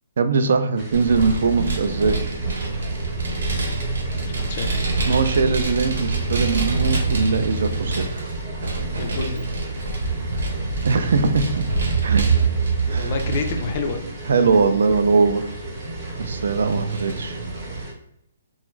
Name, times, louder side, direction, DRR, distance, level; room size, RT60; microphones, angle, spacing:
voice 1, 0.2-2.3 5.1-8.2 10.8-11.7 12.0-12.3 12.9-13.1 14.3-15.5 16.2-17.4, right 4 dB, 60° right, 8 dB, 0.3 m, -21 dB
sound 1, 0.7-17.9, equal, 15° right, 0.6 m, -40 dB
Vehicle, 0.9-17.8, right 3 dB, 85° right, 0.9 m, -25 dB
voice 2, 4.2-4.9 9.0-9.4 12.9-14.0, left 5 dB, 35° left, 5 dB, 0.3 m, -29 dB
2.4 x 2.3 x 3.0 m, 0.78 s
hypercardioid pair, 175°, 0 cm